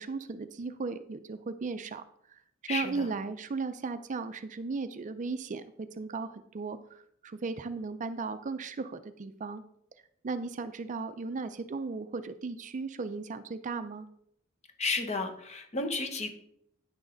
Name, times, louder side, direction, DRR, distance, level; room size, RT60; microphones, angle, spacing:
voice 1, 0.0-2.0 2.3-9.6 10.2-14.1, right 4 dB, 35° right, 11 dB, 0.4 m, -36 dB
voice 2, 2.7-3.1 14.8-16.3, left 3 dB, 30° left, 5 dB, 1.0 m, -32 dB
9.5 x 6.3 x 3.9 m, 0.72 s
head